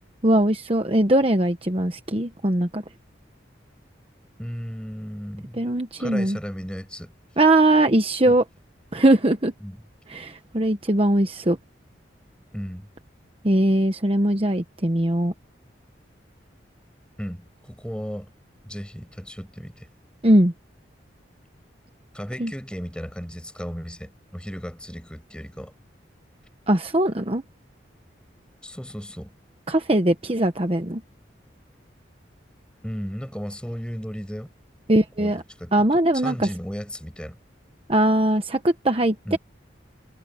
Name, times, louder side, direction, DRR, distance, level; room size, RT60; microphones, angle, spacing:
voice 1, 0.2-2.8 5.6-6.4 7.4-8.4 8.9-9.5 10.1-11.6 13.4-15.3 20.2-20.5 22.4-22.5 26.7-27.4 29.7-31.0 34.9-35.4 35.7-36.5 37.9-39.4, right 1 dB, 30° right, 1.1 m, -20 dB
voice 2, 4.4-5.7 6.0-7.1 8.2-8.3 9.6-9.8 12.5-12.9 17.2-18.3 18.6-19.9 22.1-25.7 28.6-29.3 32.8-34.5 35.2-37.4 39.2-39.4, equal, 5° left, 6.7 m, -35 dB
head